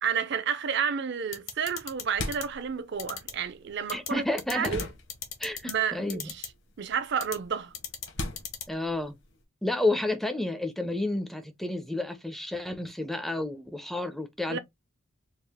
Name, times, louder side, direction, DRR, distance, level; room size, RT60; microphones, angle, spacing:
voice 1, 0.0-4.2 4.5-4.9 5.6-6.4 6.8-7.7 14.5-14.6, right 7 dB, 55° right, 0.5 m, -30 dB
sound 1, 1.3-2.0 2.3-2.4 3.0-3.3 3.9-4.1 4.4-4.8 5.1-5.7 6.1-6.5 7.2-7.4 7.7-8.1 8.4-8.6, left 9 dB, 80° left, 1.1 m, -36 dB
sound 2, 1.8-5.9 6.1-9.4, left 2 dB, 60° left, 1.0 m, -40 dB
voice 2, 3.9-4.8 5.4-6.3 8.7-9.1 9.6-14.6, left 2 dB, ahead, 0.4 m, -31 dB
3.5 x 2.4 x 3.5 m
head